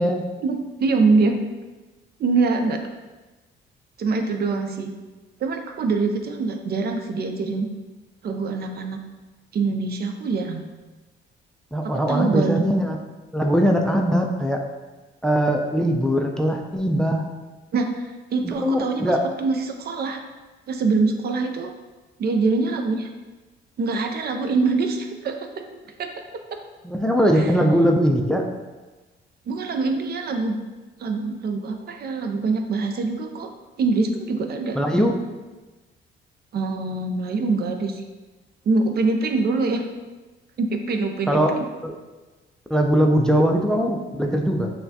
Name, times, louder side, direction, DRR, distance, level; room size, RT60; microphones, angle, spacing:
voice 1, 0.4-1.3 2.2-2.8 4.0-4.9 5.4-7.7 8.2-9.0 9.5-10.6 11.8-12.6 17.7-20.2 20.7-21.7 22.2-23.1 23.8-25.4 26.0-26.6 27.3-27.5 29.5-30.6 31.0-33.5 33.8-34.8 36.5-38.0 38.7-39.8 40.6-41.7, right 3 dB, 50° right, 5 dB, 0.5 m, -24 dB
voice 2, 11.7-13.0 13.3-14.6 15.2-17.2 18.4-19.2 26.8-28.5 34.7-35.2 41.3-41.6 41.8-41.9 42.7-44.7, equal, 5° left, 3 dB, 0.3 m, -20 dB
5.6 x 2.3 x 2.7 m, 1.2 s
cardioid pair, 90°, 20 cm